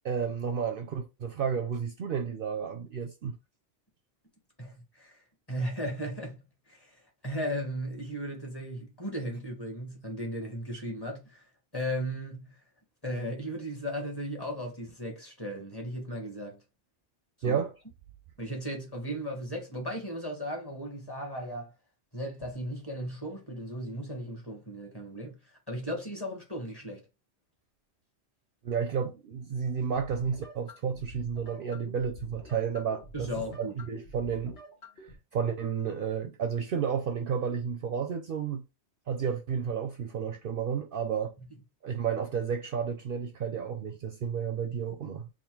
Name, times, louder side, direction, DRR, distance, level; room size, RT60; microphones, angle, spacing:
voice 1, 0.0-3.4 17.4-17.7 28.6-33.3 33.6-34.6 35.0-38.6 39.1-41.3 41.8-45.3, right 7 dB, 60° right, 0.6 m, -32 dB
voice 2, 4.6-5.2 5.5-11.4 11.7-12.6 13.0-16.6 17.4-17.6 18.4-21.7 22.1-27.0 33.1-33.8, equal, 20° left, 1.0 m, -36 dB
sound 1, 30.0-35.1, left 1 dB, 80° left, 1.6 m, -48 dB
3.6 x 2.1 x 4.4 m
omnidirectional pair, 1.2 m